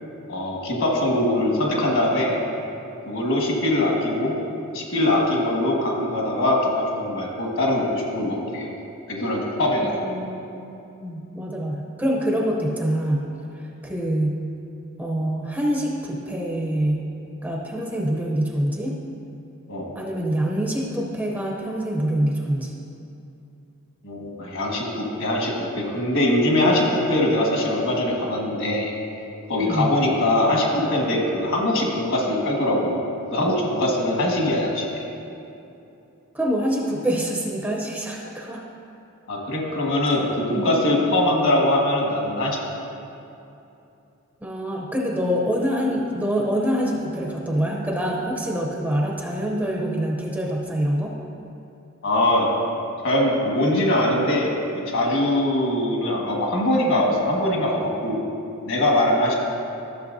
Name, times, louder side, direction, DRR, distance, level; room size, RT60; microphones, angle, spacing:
voice 1, 0.3-2.4 3.0-4.3 4.7-8.7 9.1-9.9 19.7-19.9 24.0-28.9 29.5-33.0 33.3-34.9 39.3-42.6 52.0-52.5 53.0-54.5 54.9-58.2 58.6-59.3, left 1 dB, 60° left, -1 dB, 1.6 m, -22 dB
voice 2, 9.8-13.2 13.8-14.4 15.0-17.1 17.4-19.0 19.9-22.7 29.6-29.9 36.3-38.6 40.5-40.7 44.4-51.2, equal, 10° right, -1 dB, 0.7 m, -25 dB
13.0 x 6.8 x 2.7 m, 2.8 s
head